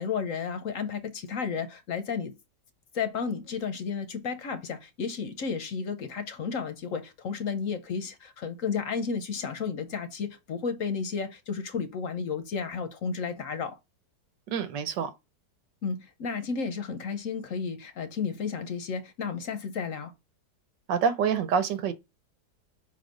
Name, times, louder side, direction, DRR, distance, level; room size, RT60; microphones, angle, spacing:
voice 1, 0.0-2.3 2.9-13.8 15.8-20.1, left 5 dB, 55° left, 1.0 m, -32 dB
voice 2, 14.5-15.1 20.9-21.9, right 7 dB, 85° right, 1.6 m, -26 dB
5.4 x 3.9 x 5.1 m
omnidirectional pair, 1.9 m